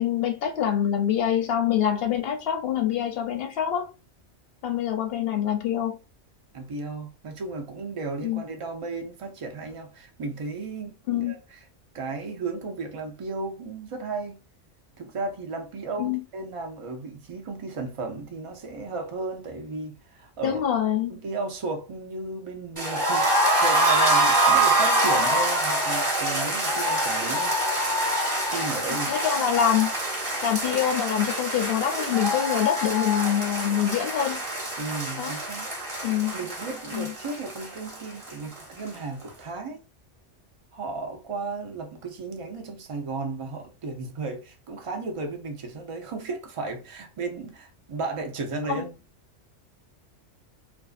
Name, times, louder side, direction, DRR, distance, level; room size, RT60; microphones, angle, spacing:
voice 1, 0.0-3.9 4.6-6.0 8.2-8.4 11.1-11.4 16.0-16.2 20.4-21.2 29.1-29.9 30.4-34.4 35.2-35.3 36.0-36.4 36.9-37.1 48.7-48.9, left 10 dB, 65° left, 0.7 m, -25 dB
voice 2, 6.5-11.4 11.9-14.4 15.0-20.6 21.1-27.6 28.5-29.1 34.8-35.7 36.1-39.8 40.7-48.9, right 3 dB, 60° right, 0.3 m, -34 dB
sound 1, 22.8-38.6 38.9-39.0 39.3-39.4, right 1 dB, 30° right, 0.8 m, -25 dB
2.5 x 2.3 x 2.4 m
omnidirectional pair, 1.2 m